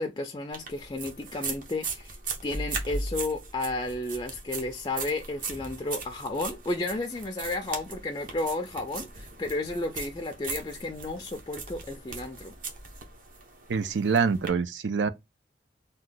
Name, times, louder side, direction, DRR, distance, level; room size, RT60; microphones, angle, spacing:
voice 1, 0.0-2.2 2.4-12.5, left 2 dB, 25° left, 0.4 m, -32 dB
sound 1, 0.5-14.5, right 3 dB, 45° right, 0.8 m, -38 dB
voice 2, 13.7-15.1, right 5 dB, 75° right, 0.5 m, -25 dB
2.9 x 2.2 x 3.8 m
head